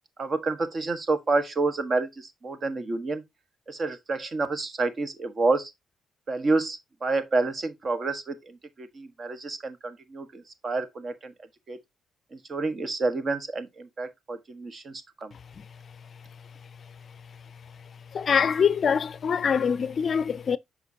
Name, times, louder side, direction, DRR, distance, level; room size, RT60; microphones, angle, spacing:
voice 1, 0.2-3.2 3.7-5.7 6.3-11.3 11.7-11.8 12.3-15.3, right 3 dB, 40° right, 1.4 m, -29 dB
voice 2, 18.1-20.6, left 7 dB, 50° left, 0.4 m, -24 dB
8.0 x 5.7 x 2.8 m
cardioid pair, 90°, 0 cm